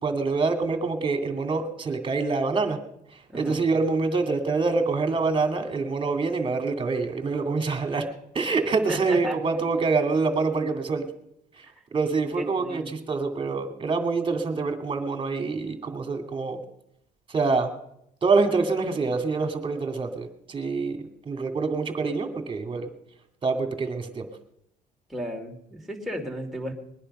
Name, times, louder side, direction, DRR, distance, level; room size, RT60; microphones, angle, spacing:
voice 1, 0.0-2.8 3.1-8.1 8.3-11.1 11.6-11.7 11.9-16.6 17.3-17.7 18.2-22.9 23.4-24.3, right 4 dB, 30° right, 6 dB, 2.4 m, -26 dB
voice 2, 8.9-9.4 12.3-12.9 25.1-26.7, equal, ahead, -1 dB, 2.8 m, -34 dB
21.0 x 10.5 x 5.5 m, 0.77 s
cardioid pair, 110°, 17 cm